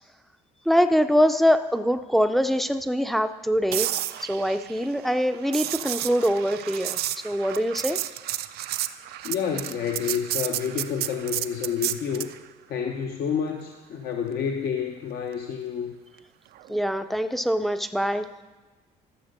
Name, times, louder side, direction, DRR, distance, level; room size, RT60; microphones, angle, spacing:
voice 1, 0.7-3.9 4.2-7.0 7.2-8.0 16.7-18.3, equal, ahead, 9 dB, 0.5 m, -23 dB
sound 1, 3.7-12.4 16.6-16.8, right 13 dB, 70° right, 0.5 m, -32 dB
voice 2, 9.2-12.3 12.7-15.9, left 7 dB, 65° left, 3 dB, 0.9 m, -29 dB
13.0 x 6.7 x 6.6 m, 1.2 s
cardioid pair, 110°, 17 cm